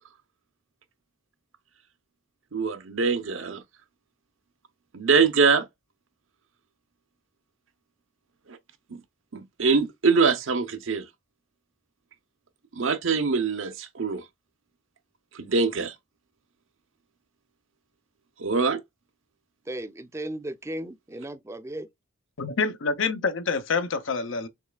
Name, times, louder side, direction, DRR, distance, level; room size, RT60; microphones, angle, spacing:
voice 1, 2.5-3.6 4.9-5.6 8.5-8.6 8.9-9.0 9.3-11.0 12.7-14.2 15.3-15.9 18.4-18.8, right 4 dB, 90° right, 0.9 m, -23 dB
voice 2, 19.7-21.9, right 1 dB, 15° right, 0.5 m, -35 dB
voice 3, 22.4-24.5, left 4 dB, 75° left, 0.7 m, -27 dB
6.3 x 3.2 x 2.3 m
head